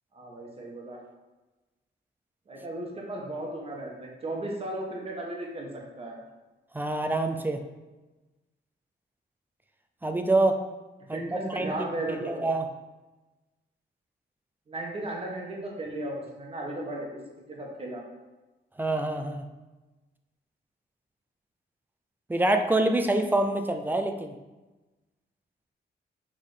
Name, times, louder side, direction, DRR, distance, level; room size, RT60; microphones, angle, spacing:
voice 1, 0.1-1.0 2.5-5.7 6.0-6.2 11.1-12.4 14.7-17.2 17.5-18.0, right 1 dB, 30° right, -1 dB, 1.2 m, -35 dB
voice 2, 6.7-7.6 10.0-10.6 11.1-11.7 12.1-12.7 18.8-19.4 22.3-24.3, right 2 dB, 10° right, 6 dB, 0.4 m, -26 dB
6.4 x 3.6 x 4.9 m, 1.1 s
wide cardioid pair, 175°, 19 cm